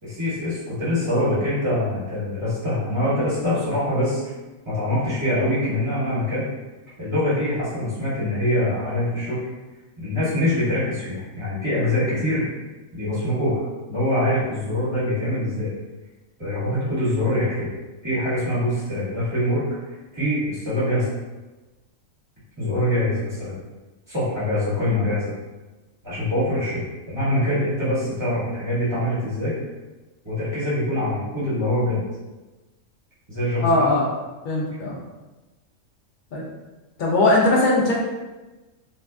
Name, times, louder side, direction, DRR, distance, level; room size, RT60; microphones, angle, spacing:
voice 1, 0.0-4.3 4.6-6.5 7.0-9.4 10.0-12.5 12.9-13.6 13.9-15.7 16.4-17.7 18.0-21.1 22.6-23.6 24.1-25.3 26.0-29.6 30.2-32.0 33.3-33.9, left 1 dB, 20° right, -12 dB, 1.5 m, -24 dB
voice 2, 33.6-34.1 34.4-35.0 36.3-36.5 37.0-37.9, left 2 dB, 80° left, -4 dB, 0.4 m, -19 dB
2.6 x 2.4 x 2.2 m, 1.2 s
omnidirectional pair, 1.4 m